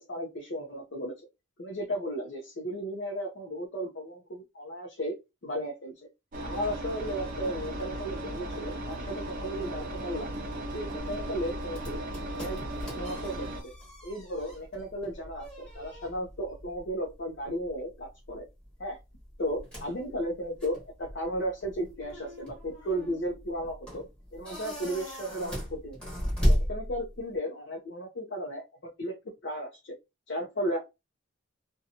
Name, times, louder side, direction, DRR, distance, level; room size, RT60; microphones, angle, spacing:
voice 1, 0.1-1.1 1.6-5.1 5.4-5.9 6.4-10.4 10.7-12.0 12.3-12.6 12.9-13.7 14.0-18.4 18.8-19.0 19.4-24.0 24.3-26.0 26.4-29.1 29.4-29.9 30.3-30.8, equal, 55° left, 0 dB, 0.6 m, -35 dB
Engine, 6.3-13.6, right 1 dB, 40° right, 0.5 m, -36 dB
sound 1, 11.0-27.4, equal, 5° left, 1.1 m, -36 dB
2.6 x 2.2 x 2.7 m, 0.24 s
head